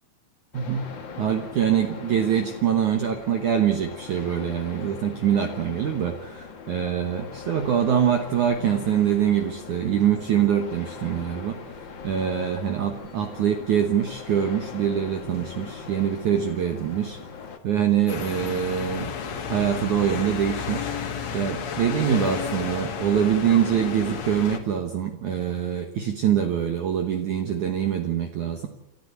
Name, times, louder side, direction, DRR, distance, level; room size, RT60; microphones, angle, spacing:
sound 1, 0.5-17.6, left 5 dB, 85° left, 1.0 m, -41 dB
voice 1, 0.5-0.9 1.2-11.6 12.0-17.2 17.6-19.1 19.5-20.9 21.3-28.7, right 9 dB, 65° right, 5 dB, 1.9 m, -24 dB
sound 2, 18.1-24.6, left 7 dB, 50° left, 2.3 m, -32 dB
28.5 x 13.5 x 8.3 m, 0.90 s
omnidirectional pair, 5.3 m